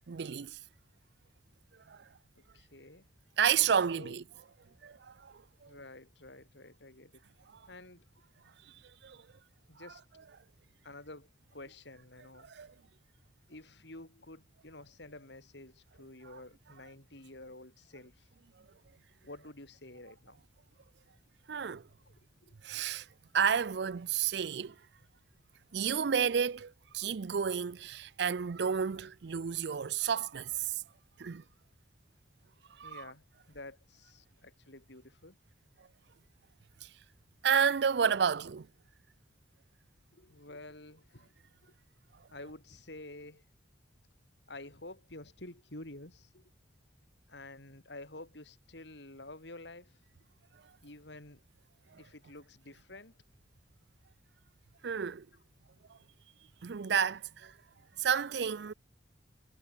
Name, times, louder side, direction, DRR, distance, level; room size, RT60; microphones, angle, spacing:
voice 1, 0.1-0.6 1.9-2.0 3.4-4.2 4.8-5.3 5.6-5.7 9.0-9.2 12.5-12.7 21.5-21.8 22.6-23.1 23.3-24.7 25.7-30.8 31.2-31.4 32.8-33.0 37.4-38.7 54.8-55.3 56.6-57.5 58.0-58.7, right 7 dB, 60° right, 0.5 m, -31 dB
voice 2, 2.4-3.1 3.9-4.2 5.7-7.2 7.7-8.1 9.7-10.0 10.8-12.5 13.5-18.3 19.2-20.4 22.1-22.5 32.8-35.4 40.1-41.3 41.6-41.7 42.3-43.5 44.5-46.5 47.3-50.0 50.8-51.4 52.0-53.1, left 2 dB, 65° left, 3.8 m, -50 dB
head